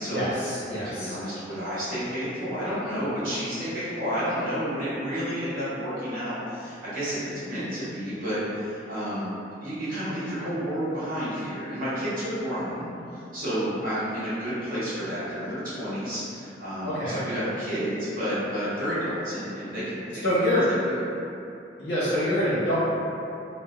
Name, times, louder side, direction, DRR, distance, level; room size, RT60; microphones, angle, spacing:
voice 1, 0.1-1.2 16.8-17.2 20.2-20.7 21.8-22.7, equal, 85° left, -12 dB, 1.0 m, -25 dB
voice 2, 0.8-9.3 9.6-20.2 20.5-21.0, equal, 50° right, -11 dB, 0.9 m, -31 dB
2.5 x 2.0 x 2.4 m, 2.7 s
head